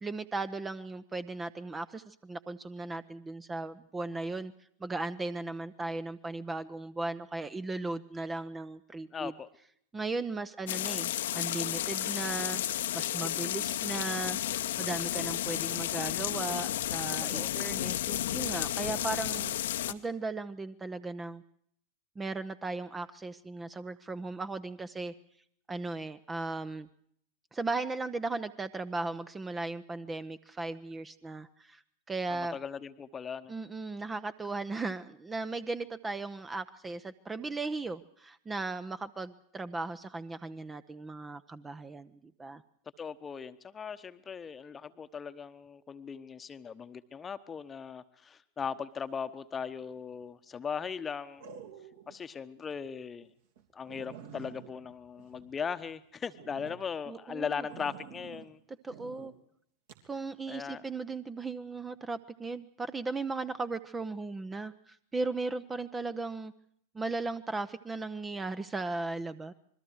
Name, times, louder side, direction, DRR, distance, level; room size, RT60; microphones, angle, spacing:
voice 1, 0.0-4.5 4.8-9.3 9.9-14.4 14.8-19.6 19.9-21.4 22.2-25.1 25.7-26.9 27.5-31.8 32.1-32.6 33.5-42.6 57.1-57.6 58.8-59.3 60.0-66.5 66.9-69.5, right 3 dB, 15° right, 13 dB, 0.8 m, -37 dB
voice 2, 9.1-9.5 17.3-17.5 32.3-33.5 43.0-51.4 52.1-53.3 53.7-58.6 60.5-60.8, left 6 dB, 20° left, 11 dB, 1.1 m, -38 dB
sound 1, 10.7-19.9, left 12 dB, 60° left, 1.0 m, -32 dB
sound 2, 49.8-50.2 51.4-52.2 52.6-52.7 53.2-53.3 53.6-53.7 53.9-55.9 56.3-56.8 57.7-58.5 58.9-59.3 59.9-60.1, right 8 dB, 55° right, 3.0 m, -49 dB
27.0 x 21.5 x 4.7 m, 0.67 s
figure-of-eight pair, 90°, 0 cm